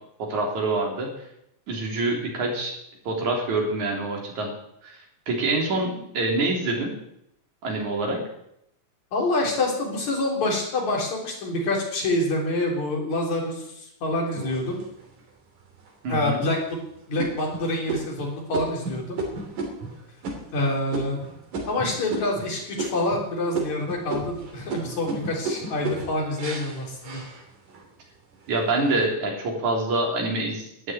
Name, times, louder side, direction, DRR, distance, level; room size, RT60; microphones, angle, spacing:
voice 1, 0.2-1.3 1.7-2.7 3.1-4.5 4.8-5.0 5.3-6.9 7.6-8.2 16.0-16.4 28.5-30.9, right 2 dB, 70° right, 0 dB, 4.8 m, -26 dB
voice 2, 9.1-14.8 16.1-16.6 17.1-19.2 20.5-21.2 21.7-27.2, left 2 dB, 65° left, -1 dB, 5.0 m, -26 dB
sound 1, 14.3-15.2 15.8-15.9 16.4-16.7 17.2-22.5 22.8-23.3 23.5-27.9 28.3-28.9, right 3 dB, 85° right, 4.5 m, -33 dB
12.5 x 9.5 x 9.3 m, 0.77 s
omnidirectional pair, 3.5 m